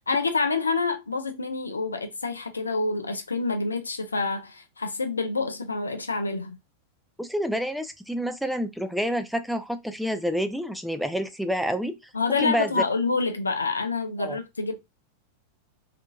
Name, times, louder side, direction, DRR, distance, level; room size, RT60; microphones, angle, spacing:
voice 1, 0.1-6.6 12.1-14.8, left 4 dB, 75° left, 0.4 m, -27 dB
voice 2, 7.2-12.0 12.3-12.8 14.2-14.4, equal, ahead, 0.3 m, -28 dB
2.7 x 2.5 x 2.2 m
figure-of-eight pair, 90°, 0 cm